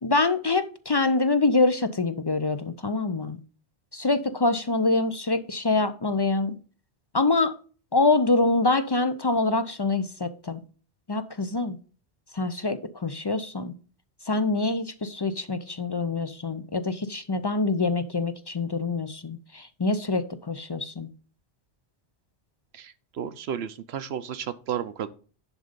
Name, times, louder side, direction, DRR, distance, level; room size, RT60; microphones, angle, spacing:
voice 1, 0.0-3.4 3.9-6.5 7.1-7.5 7.9-10.6 11.1-11.8 12.3-13.7 14.3-21.1, left 3 dB, 35° left, 0.4 m, -25 dB
voice 2, 22.7-25.1, right 9 dB, 75° right, 0.9 m, -33 dB
10.5 x 3.8 x 5.1 m
omnidirectional pair, 1.1 m